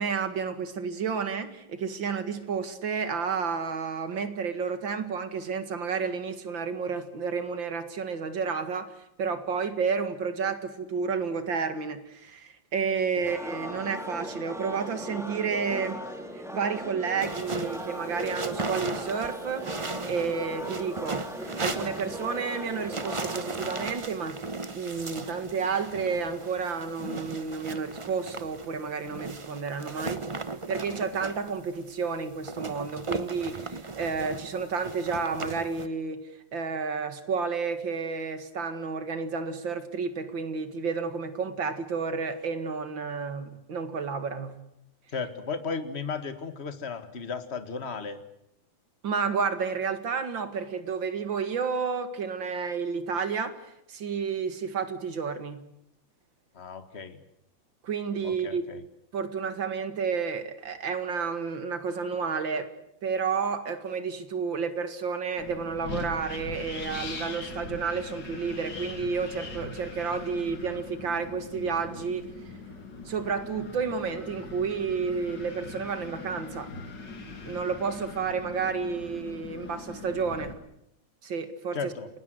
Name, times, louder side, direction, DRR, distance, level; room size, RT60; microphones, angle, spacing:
voice 1, 0.0-16.0 16.3-24.4 24.7-30.2 30.7-36.2 36.5-44.6 49.0-53.6 53.9-55.6 57.8-58.6 59.1-62.7 63.0-72.2 73.1-76.7 77.5-80.5 81.2-81.9, right 5 dB, 75° right, 10 dB, 2.7 m, -31 dB
sound 1, 13.2-23.9, equal, ahead, 3.0 m, -38 dB
sound 2, 17.2-35.9, right 3 dB, 25° right, 0.7 m, -37 dB
voice 2, 45.1-48.2 56.5-57.2 58.2-58.8 81.7-82.1, left 5 dB, 35° left, 9 dB, 2.0 m, -35 dB
Wind, 65.4-80.5, left 3 dB, 65° left, 3.1 m, -41 dB
29.5 x 19.5 x 7.9 m, 0.77 s
omnidirectional pair, 2.1 m